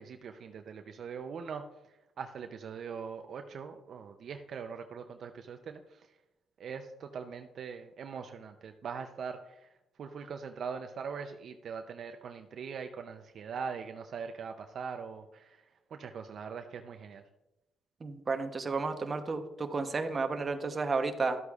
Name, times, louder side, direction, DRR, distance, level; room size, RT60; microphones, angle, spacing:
voice 1, 0.0-1.6 2.2-6.1 6.6-9.7 10.0-15.6 15.9-17.2, right 6 dB, 60° right, 6 dB, 0.6 m, -41 dB
voice 2, 18.0-21.4, right 4 dB, 35° right, 7 dB, 0.9 m, -32 dB
12.5 x 8.0 x 2.4 m, 0.94 s
cardioid pair, 90°, 0 cm